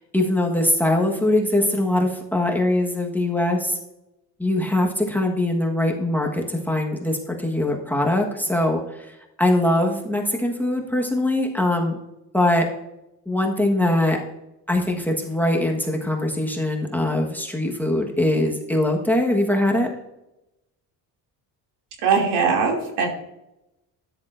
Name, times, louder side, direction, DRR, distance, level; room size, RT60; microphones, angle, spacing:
voice 1, 0.1-3.8 4.4-9.1 9.4-12.0 12.3-12.7 13.3-14.2 14.7-19.9, left 1 dB, 5° left, 0 dB, 1.4 m, -22 dB
voice 2, 22.0-23.1, right 5 dB, 75° right, 1 dB, 2.8 m, -20 dB
13.0 x 10.0 x 2.6 m, 0.91 s
cardioid pair, 120°, 41 cm